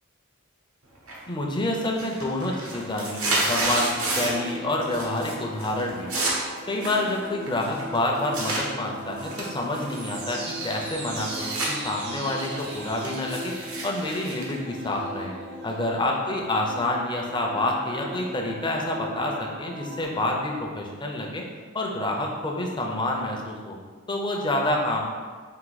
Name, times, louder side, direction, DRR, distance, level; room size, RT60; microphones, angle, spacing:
sound 1, 1.1-1.5 1.8-4.5 4.8-5.3 5.6-8.6 9.2-11.7 12.1-15.3, right 2 dB, 80° right, 1.0 m, -31 dB
voice 1, 1.3-6.1 6.7-13.5 13.8-15.3 15.6-21.4 21.7-23.8 24.1-25.0, left 1 dB, 20° left, 0 dB, 0.6 m, -28 dB
sound 2, 3.4-20.0, equal, 55° right, 0.7 m, -38 dB
4.7 x 2.6 x 4.0 m, 1.5 s
head